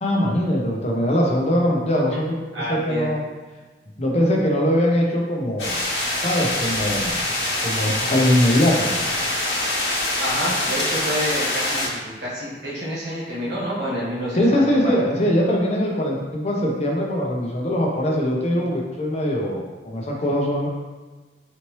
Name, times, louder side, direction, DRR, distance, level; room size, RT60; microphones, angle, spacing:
voice 1, 0.0-2.4 2.7-3.2 4.0-5.7 6.2-7.2 7.6-9.0 14.3-20.7, equal, 40° left, -1 dB, 0.7 m, -21 dB
voice 2, 2.5-3.1 10.2-14.9 15.8-15.9, equal, 75° right, -8 dB, 1.3 m, -28 dB
sound 1, 5.6-11.9, left 1 dB, 90° left, 1.4 m, -24 dB
4.1 x 3.1 x 3.0 m, 1.3 s
head